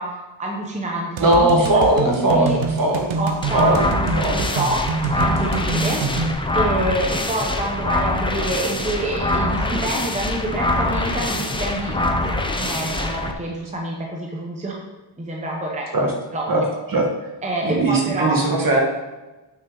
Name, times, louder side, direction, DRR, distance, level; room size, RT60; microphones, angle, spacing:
voice 1, 0.0-2.6 3.2-6.2 6.5-12.3 12.6-14.7 15.2-15.9 16.3-16.5 17.4-18.4, right 1 dB, 15° right, -1 dB, 0.9 m, -27 dB
voice 2, 1.2-3.2 3.5-4.5 6.1-6.4 15.9-16.1 16.5-16.6 16.9-17.1 17.6-18.8, right 1 dB, 45° right, 0 dB, 1.6 m, -19 dB
sound 1, 1.2-6.3, right 4 dB, 85° right, 0.9 m, -26 dB
sound 2, 3.4-13.3, left 2 dB, 10° left, 0.5 m, -24 dB
8.7 x 6.2 x 3.9 m, 1.1 s
wide cardioid pair, 180°, 46 cm